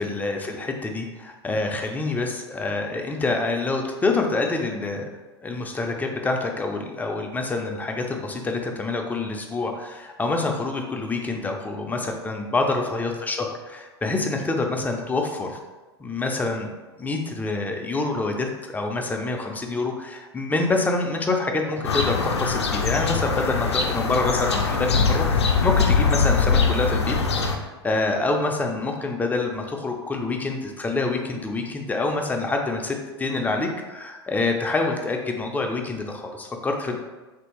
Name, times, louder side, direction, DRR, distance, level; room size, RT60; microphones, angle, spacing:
voice 1, 0.0-5.1 5.4-15.6 16.0-16.7 17.0-27.2 27.5-37.0, left 3 dB, 10° left, 2 dB, 0.4 m, -26 dB
sound 1, 21.8-27.6, left 5 dB, 90° left, 0.4 m, -22 dB
3.0 x 2.6 x 2.9 m, 1.2 s
hypercardioid pair, 95°, 14 cm